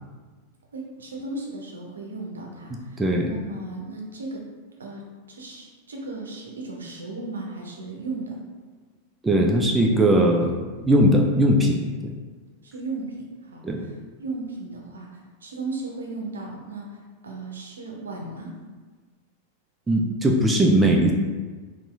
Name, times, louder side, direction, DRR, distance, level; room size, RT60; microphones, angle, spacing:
voice 1, 0.7-4.4 4.8-5.0 5.3-8.3 12.6-13.2 13.4-18.5, right 3 dB, 70° right, 0 dB, 0.6 m, -36 dB
voice 2, 3.0-3.3 9.2-10.5 10.8-11.8 12.0-12.1 13.6-13.8 19.9-21.1, right 1 dB, 10° right, 0 dB, 0.3 m, -19 dB
4.0 x 2.5 x 2.3 m, 1.4 s
figure-of-eight pair, 90°, 0 cm